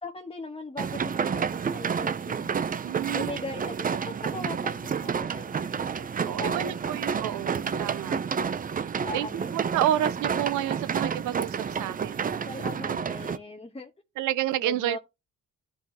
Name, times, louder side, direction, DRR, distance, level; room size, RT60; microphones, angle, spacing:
voice 1, 0.0-2.7 3.0-3.7 4.0-6.7 7.1-7.2 9.0-9.5 11.7-11.9 12.5-13.9 14.6-15.0, left 2 dB, 20° left, 1.2 m, -39 dB
sound 1, 0.8-13.4, right 6 dB, 30° right, 0.5 m, -30 dB
voice 2, 2.8-3.3 6.2-8.2 9.1-12.5 12.9-13.0 14.2-15.0, right 12 dB, 90° right, 0.6 m, -30 dB
13.0 x 4.9 x 2.8 m
cardioid pair, 90°, 30 cm